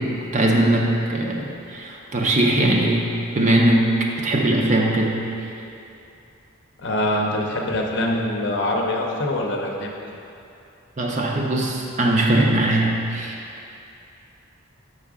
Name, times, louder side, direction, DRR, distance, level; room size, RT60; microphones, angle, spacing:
voice 1, 0.0-3.9 4.2-5.2 11.0-13.4, right 1 dB, 35° right, 0 dB, 0.6 m, -20 dB
voice 2, 6.8-9.9, left 1 dB, 55° left, 0 dB, 0.7 m, -24 dB
7.1 x 5.4 x 3.6 m, 2.7 s
head